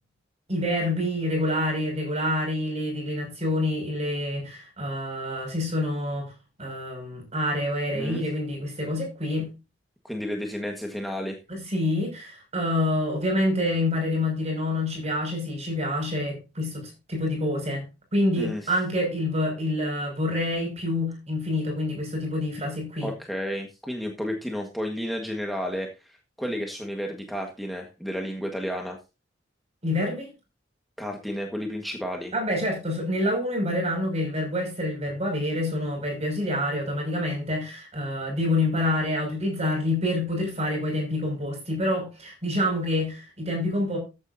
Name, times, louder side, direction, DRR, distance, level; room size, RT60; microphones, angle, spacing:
voice 1, 0.5-6.3 6.6-9.5 11.5-23.1 29.8-30.3 32.3-44.0, left 1 dB, 35° right, 6.3 m, -27 dB
voice 2, 10.0-11.4 18.4-18.7 23.0-29.0 31.0-32.3, equal, ahead, 1.6 m, -32 dB
14.5 x 9.8 x 2.7 m
head